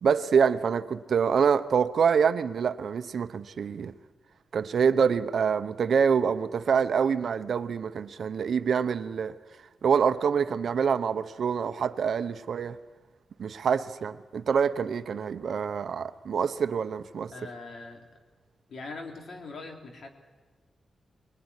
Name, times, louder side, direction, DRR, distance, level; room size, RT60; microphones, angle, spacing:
voice 1, 0.0-3.9 4.5-9.4 9.8-12.8 13.4-17.3, right 6 dB, 70° right, 1.0 m, -26 dB
voice 2, 17.3-18.0 18.7-20.1, left 3 dB, 65° left, 3.7 m, -41 dB
26.0 x 20.5 x 9.9 m
wide cardioid pair, 115°, 0 cm